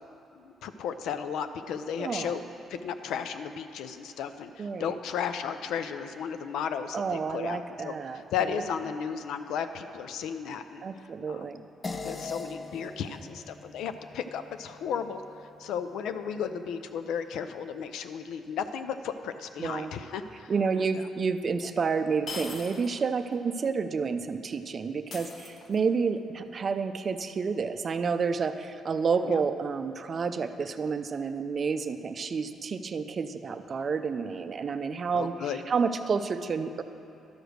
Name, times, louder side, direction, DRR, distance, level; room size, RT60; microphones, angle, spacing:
voice 1, 0.4-2.4 2.7-10.8 11.3-11.5 12.0-15.2 15.6-20.5 20.8-20.9 29.2-29.4 35.1-35.6, left 7 dB, 85° left, 9 dB, 0.4 m, -34 dB
voice 2, 2.0-2.4 4.6-5.0 6.9-8.6 10.8-11.6 19.6-19.9 20.5-36.8, right 5 dB, 45° right, 10 dB, 0.4 m, -30 dB
sound 1, 11.8-16.6, left 3 dB, 30° left, 0.6 m, -42 dB
sound 2, 20.8-20.9 22.3-23.0 23.3-23.4 25.1-26.0, left 3 dB, 60° left, 0.9 m, -41 dB
12.0 x 5.0 x 6.3 m, 2.7 s
cardioid pair, 90°, 0 cm